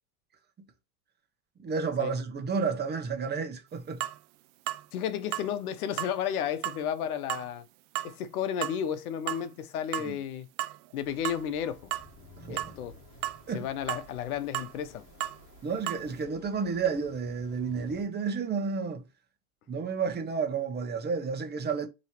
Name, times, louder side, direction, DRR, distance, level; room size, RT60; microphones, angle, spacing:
voice 1, 1.6-4.0 10.1-10.2 12.4-12.6 13.5-13.7 15.6-19.0 19.7-21.9, right 5 dB, 20° right, 1.1 m, -31 dB
sound 1, 4.0-4.2 4.7-4.8 5.3-5.5 6.0-6.2 6.6-6.8 7.3-7.5 7.9-8.1 8.6-8.8 9.3-9.5 9.9-10.1 10.6-10.9 11.2-11.4 11.9-12.1 12.6-12.7 13.2-13.4 13.9-14.0 14.5-14.7 15.2-15.4 15.9-16.0, right 14 dB, 45° right, 0.5 m, -33 dB
voice 2, 4.9-7.6 8.0-10.5 10.9-11.9 12.5-13.0 13.5-15.1, left 9 dB, 70° left, 0.9 m, -33 dB
sound 2, 11.0-18.0, left 1 dB, 40° left, 1.6 m, -53 dB
5.4 x 3.2 x 3.1 m
hypercardioid pair, 95°, 45 cm